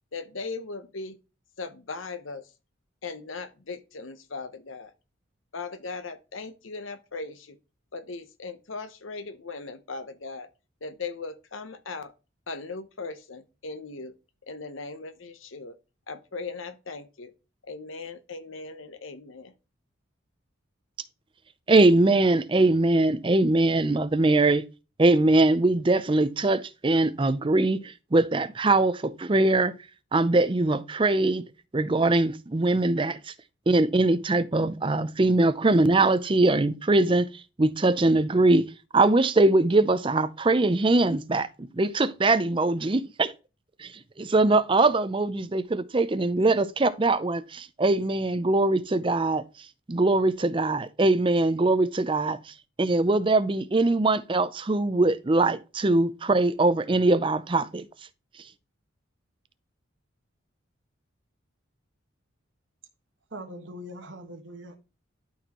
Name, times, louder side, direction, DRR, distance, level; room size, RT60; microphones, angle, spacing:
voice 1, 0.1-1.2 1.6-2.5 3.0-4.9 5.5-7.6 7.9-10.5 10.8-12.1 12.5-14.1 14.5-15.8 16.1-17.3 17.6-19.5, left 4 dB, 75° left, 0.9 m, -38 dB
voice 2, 21.7-24.6 25.0-29.7 30.1-33.3 33.7-38.7 38.9-43.3 43.8-57.9, right 2 dB, 25° right, 0.5 m, -22 dB
voice 3, 63.3-64.8, equal, 65° right, 1.4 m, -41 dB
12.0 x 4.3 x 3.0 m
head